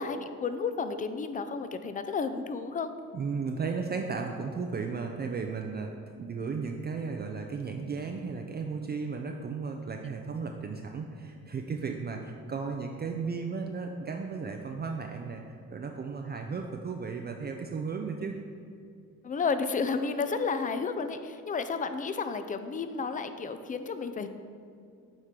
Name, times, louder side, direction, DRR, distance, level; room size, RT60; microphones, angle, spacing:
voice 1, 0.0-2.9 19.2-24.3, left 5 dB, 25° left, 10 dB, 0.4 m, -32 dB
voice 2, 3.1-18.5, right 5 dB, 35° right, 3 dB, 0.4 m, -35 dB
8.0 x 4.3 x 3.7 m, 2.4 s
cardioid pair, 90°, 30 cm